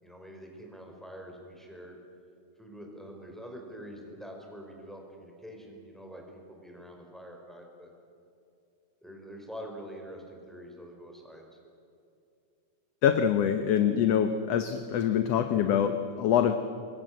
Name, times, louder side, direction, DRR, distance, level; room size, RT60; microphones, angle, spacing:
voice 1, 0.0-2.0 2.6-6.2 6.5-7.9 9.0-11.5, equal, ahead, 1 dB, 4.8 m, -45 dB
voice 2, 13.0-16.6, left 9 dB, 65° left, 8 dB, 1.8 m, -25 dB
26.5 x 23.0 x 7.8 m, 2.6 s
omnidirectional pair, 3.6 m